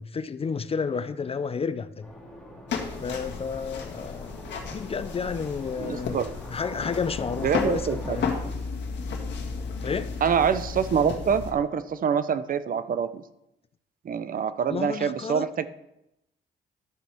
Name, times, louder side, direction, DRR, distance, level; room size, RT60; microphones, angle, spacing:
voice 1, 0.0-2.1 3.0-4.3 4.7-6.2 6.5-8.3 9.8-10.1 14.7-15.7, left 5 dB, 30° left, 13 dB, 0.4 m, -31 dB
sound 1, 2.0-8.4, left 1 dB, 5° left, 2.2 m, -44 dB
sound 2, 2.7-11.5, left 5 dB, 70° left, 1.7 m, -33 dB
voice 2, 5.8-6.3 7.4-8.2 10.2-13.2 14.0-15.7, right 7 dB, 45° right, 13 dB, 0.6 m, -25 dB
12.0 x 7.5 x 3.5 m, 0.87 s
cardioid pair, 90°, 19 cm